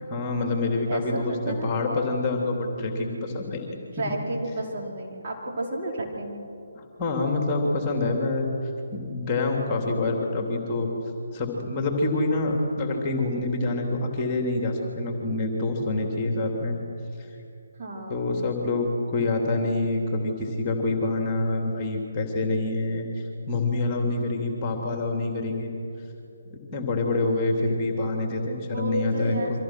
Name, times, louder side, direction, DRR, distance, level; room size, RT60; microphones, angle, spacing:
voice 1, 0.0-3.8 6.7-8.5 8.9-10.9 11.3-16.8 17.2-17.3 18.1-25.7 26.5-29.4, left 2 dB, 20° left, 1 dB, 3.3 m, -26 dB
voice 2, 0.9-1.7 3.9-6.4 17.8-18.4 27.4-27.5 28.7-29.5, right 1 dB, 35° right, -2 dB, 4.9 m, -31 dB
29.5 x 25.0 x 6.3 m, 2.7 s
figure-of-eight pair, 140°, 0 cm